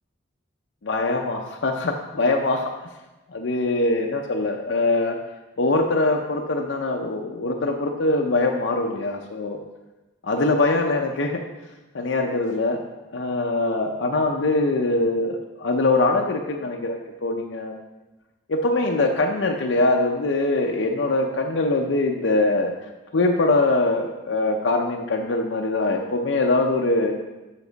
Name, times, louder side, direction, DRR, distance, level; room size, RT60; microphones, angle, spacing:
voice 1, 0.8-2.7 3.3-5.2 5.6-9.6 10.2-11.4 11.9-12.8 13.1-17.7 18.5-22.7 23.1-27.2, left 2 dB, 80° left, 1 dB, 0.6 m, -22 dB
7.2 x 6.6 x 4.0 m, 1.1 s
head